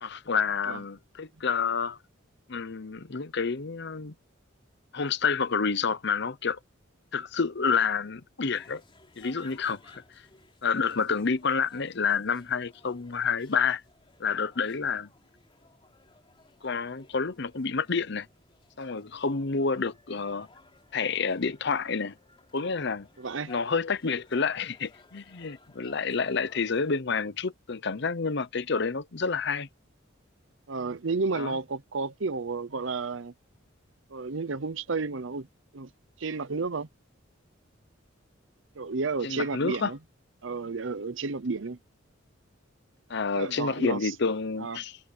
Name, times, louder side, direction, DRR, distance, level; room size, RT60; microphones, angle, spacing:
voice 1, 0.0-2.0 2.5-4.1 4.9-6.6 7.1-8.8 9.2-10.0 10.6-13.8 14.2-15.1 16.6-18.3 18.8-20.5 20.9-22.2 22.5-23.1 23.5-29.7 31.3-31.6 39.2-39.9 43.1-45.0, left 5 dB, 60° left, 0.8 m, -29 dB
sound 1, 8.5-27.0, left 3 dB, 25° left, 3.1 m, -58 dB
voice 2, 23.2-23.5 30.7-33.3 34.1-35.5 35.7-35.9 36.2-36.9 38.7-40.0 40.4-41.8 43.3-44.1 44.6-44.8, right 4 dB, 70° right, 0.8 m, -32 dB
head